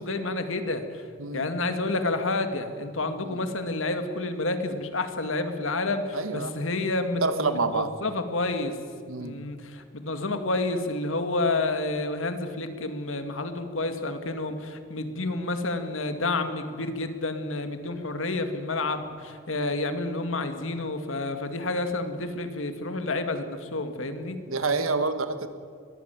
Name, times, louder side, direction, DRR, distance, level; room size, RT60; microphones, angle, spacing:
voice 1, 0.0-1.0 1.3-8.8 9.2-24.4, left 2 dB, 75° left, 8 dB, 2.1 m, -29 dB
voice 2, 6.1-6.5 7.2-7.9 9.1-9.4 24.5-25.5, right 3 dB, 90° right, 10 dB, 1.7 m, -27 dB
22.0 x 15.0 x 9.3 m, 2.3 s
head